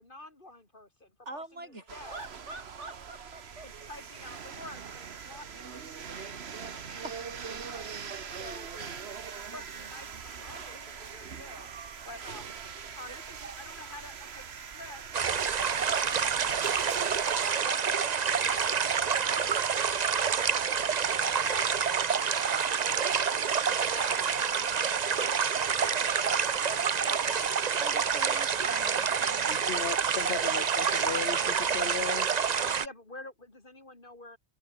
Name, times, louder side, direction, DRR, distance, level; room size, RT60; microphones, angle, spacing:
voice 1, 0.0-2.2 3.6-9.1 9.5-11.7 12.1-12.6 13.0-15.1 15.4-16.9 17.4-19.8 20.1-22.0 23.2-26.9 32.5-34.4, left 2 dB, 45° left, 3.7 m, -49 dB
voice 2, 1.3-3.7 7.0-7.1 9.6-9.7 13.1-13.2 26.7-27.4 27.7-29.4, right 2 dB, 80° right, 6.0 m, -44 dB
sound 1, 1.9-17.5, right 6 dB, 65° right, 1.5 m, -42 dB
sound 2, 15.1-32.9, right 6 dB, 40° right, 0.8 m, -28 dB
voice 3, 29.4-32.3, left 7 dB, 70° left, 1.2 m, -36 dB
omnidirectional pair, 1.2 m